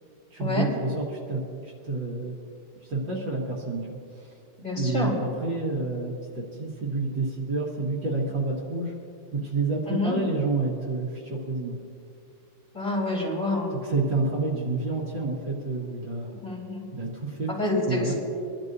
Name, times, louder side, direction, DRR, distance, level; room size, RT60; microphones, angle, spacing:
voice 1, 0.3-2.3 2.8-4.3 4.8-8.9 9.3-11.8 13.7-16.4 16.9-17.5 17.9-18.1, right 3 dB, 60° right, -3 dB, 2.3 m, -29 dB
voice 2, 4.6-5.1 9.9-10.1 12.7-13.7 16.4-16.8 17.6-18.1, left 2 dB, 20° left, -6 dB, 4.3 m, -27 dB
25.0 x 12.0 x 2.7 m, 2.4 s
omnidirectional pair, 2.4 m